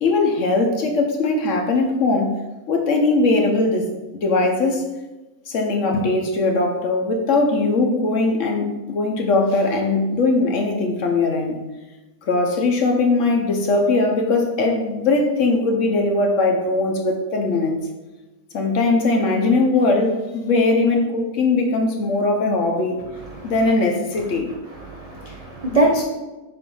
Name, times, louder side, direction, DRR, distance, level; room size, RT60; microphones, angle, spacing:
voice 1, 0.0-2.4 2.7-4.8 5.5-11.6 12.3-17.8 18.5-23.0 23.4-24.5, left 3 dB, 60° left, 2 dB, 1.0 m, -20 dB
voice 2, 24.7-26.0, right 2 dB, 60° right, -1 dB, 0.4 m, -22 dB
6.8 x 2.7 x 5.4 m, 1.1 s
omnidirectional pair, 1.7 m